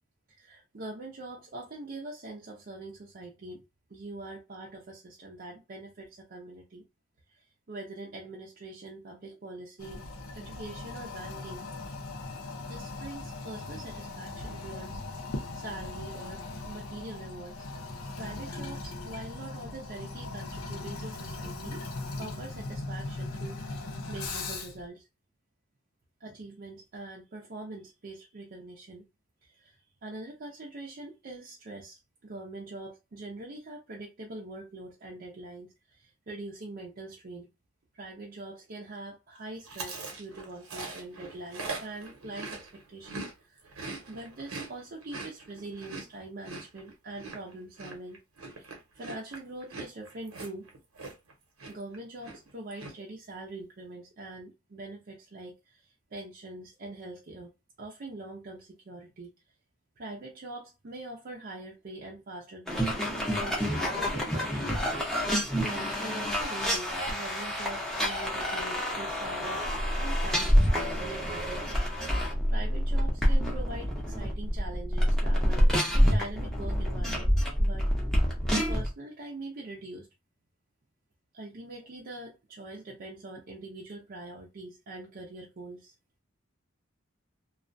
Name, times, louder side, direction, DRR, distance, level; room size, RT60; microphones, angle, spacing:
voice 1, 0.3-3.6 3.9-6.8 7.3-7.4 7.7-10.0 10.3-11.7 12.7-17.6 18.2-21.8 22.2-25.1 26.2-29.1 29.4-29.8 30.0-37.5 37.9-43.7 44.1-50.7 51.7-57.5 57.8-59.3 60.0-64.8 65.6-69.7 70.0-71.9 72.5-77.9 78.7-80.1 81.3-85.9, right 2 dB, 45° right, 0.5 m, -43 dB
Toilet flush, 9.8-24.9, left 2 dB, 85° left, 0.6 m, -39 dB
Chewing mastication, 39.7-43.3 43.6-51.3 51.6-52.0 52.2-52.9, right 3 dB, 80° right, 0.9 m, -41 dB
sound 1, 62.7-78.9, equal, ahead, 0.6 m, -27 dB
2.3 x 2.1 x 2.5 m
head